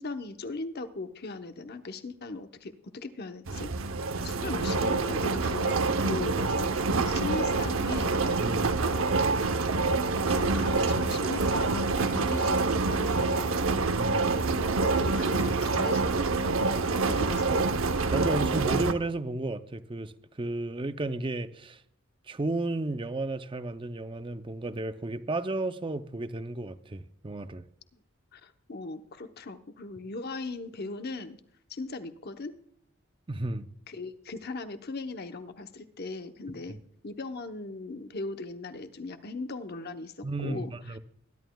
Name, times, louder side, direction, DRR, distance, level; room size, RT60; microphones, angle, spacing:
voice 1, 0.0-3.7 4.2-5.8 6.0-6.8 7.0-8.2 8.8-9.1 10.2-13.7 14.1-16.6 16.9-17.7 28.3-31.4 31.7-32.6 33.9-36.8 37.0-40.7, left 3 dB, 50° left, 0.9 m, -38 dB
sound 1, 3.5-18.9, right 3 dB, 75° right, 0.8 m, -26 dB
voice 2, 8.4-8.8 13.9-14.3 18.1-21.8 22.3-27.7 33.3-33.7 36.7-36.8 40.2-41.0, right 2 dB, 25° right, 0.5 m, -33 dB
22.0 x 11.0 x 2.3 m
head